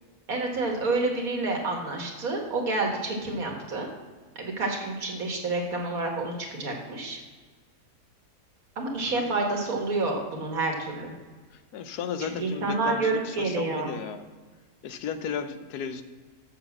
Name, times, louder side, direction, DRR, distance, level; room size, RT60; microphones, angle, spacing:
voice 1, 0.3-3.9 4.4-7.2 8.8-11.1 12.2-13.9, right 3 dB, 65° right, 1 dB, 2.0 m, -29 dB
voice 2, 11.7-14.3 14.8-16.0, left 7 dB, 90° left, 10 dB, 1.3 m, -34 dB
7.0 x 6.5 x 7.1 m, 1.4 s
omnidirectional pair, 1.6 m